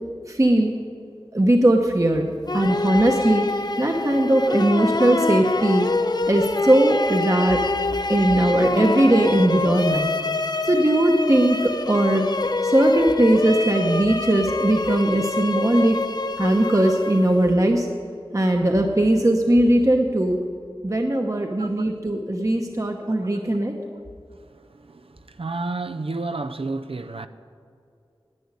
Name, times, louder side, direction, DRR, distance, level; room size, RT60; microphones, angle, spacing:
voice 1, 0.3-0.7 1.3-3.5 3.8-5.9 6.3-7.6 8.1-10.1 10.6-12.3 12.6-16.0 16.4-17.9 18.3-20.4 20.8-23.7, right 1 dB, 35° right, 1.0 m, -19 dB
sound 1, 2.5-17.5, left 3 dB, 45° left, 0.6 m, -26 dB
voice 2, 24.5-27.3, right 3 dB, 75° right, 0.6 m, -31 dB
11.0 x 9.4 x 9.6 m
wide cardioid pair, 45°, 10 cm